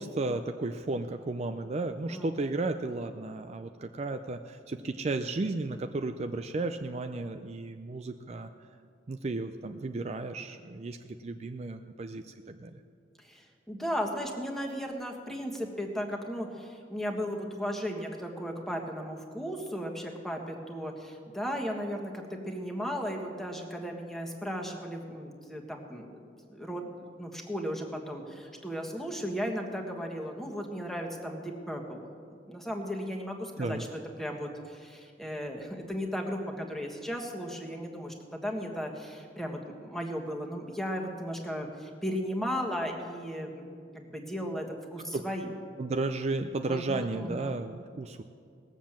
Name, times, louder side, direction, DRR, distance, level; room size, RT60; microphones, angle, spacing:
voice 1, 0.0-8.5 9.1-12.8 33.6-33.8 45.1-45.3 45.8-48.2, right 2 dB, 35° right, 7 dB, 0.4 m, -34 dB
voice 2, 13.2-26.2 26.5-26.9 27.2-32.0 32.5-45.5 46.6-47.6, equal, ahead, 1 dB, 1.4 m, -36 dB
18.5 x 7.3 x 7.4 m, 2.3 s
head